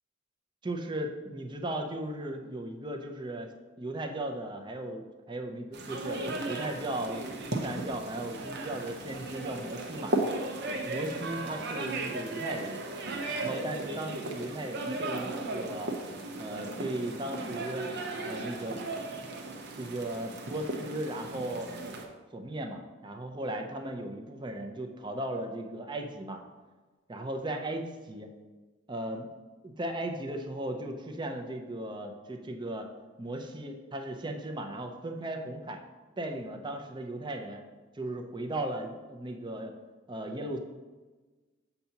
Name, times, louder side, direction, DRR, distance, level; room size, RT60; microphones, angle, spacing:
voice 1, 0.6-3.5 3.8-10.1 10.8-12.8 13.3-15.9 16.4-17.9 18.2-18.8 19.8-21.7 22.3-26.4 27.1-27.8 28.1-28.3 28.9-29.3 29.6-32.9 33.2-35.8 36.2-37.6 37.9-39.7 40.1-40.6, right 1 dB, 25° right, 3 dB, 0.5 m, -36 dB
sound 1, 5.7-22.1, right 2 dB, 55° right, 0.7 m, -36 dB
6.7 x 2.8 x 5.7 m, 1.3 s
head